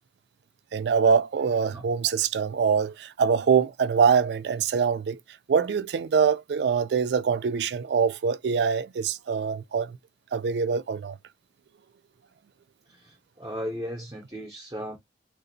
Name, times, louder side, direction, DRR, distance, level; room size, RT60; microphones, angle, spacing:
voice 1, 0.7-5.2 5.5-10.0 10.3-11.2, right 6 dB, 75° right, 0.3 m, -24 dB
voice 2, 12.9-15.0, equal, 20° right, 0.6 m, -36 dB
3.8 x 2.5 x 2.6 m
head